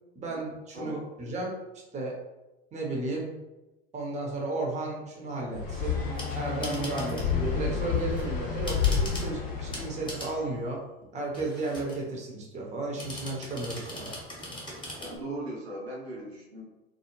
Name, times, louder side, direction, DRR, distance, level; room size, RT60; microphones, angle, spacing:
voice 1, 0.2-1.6 1.9-2.2 2.7-3.3 3.9-6.0 6.3-10.8 11.1-14.2, right 2 dB, 20° right, -1 dB, 0.7 m, -34 dB
voice 2, 0.7-1.1 14.9-16.6, right 1 dB, 90° right, -4 dB, 0.7 m, -38 dB
sound 1, 5.5-10.4, left 6 dB, 55° left, 0.8 m, -30 dB
sound 2, 6.0-7.4 8.0-9.3 9.7-10.4 11.3-12.1 13.0-15.2, left 1 dB, 15° left, 1.0 m, -40 dB
2.3 x 2.0 x 3.0 m, 1.0 s
figure-of-eight pair, 70°, 31 cm